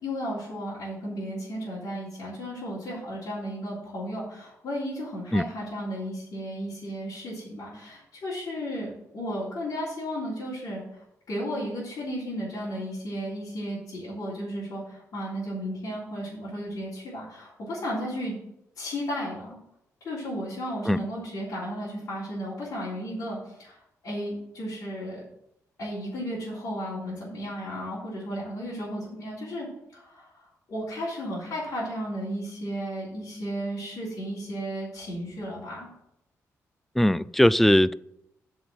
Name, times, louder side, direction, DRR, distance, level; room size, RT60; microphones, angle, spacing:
voice 1, 0.0-18.3 18.8-19.6 20.0-25.2 25.8-35.9, equal, 70° left, -9 dB, 3.6 m, -34 dB
voice 2, 37.0-37.9, left 1 dB, 5° left, 19 dB, 0.3 m, -20 dB
7.9 x 5.2 x 7.5 m, 0.80 s
cardioid pair, 90°, 6 cm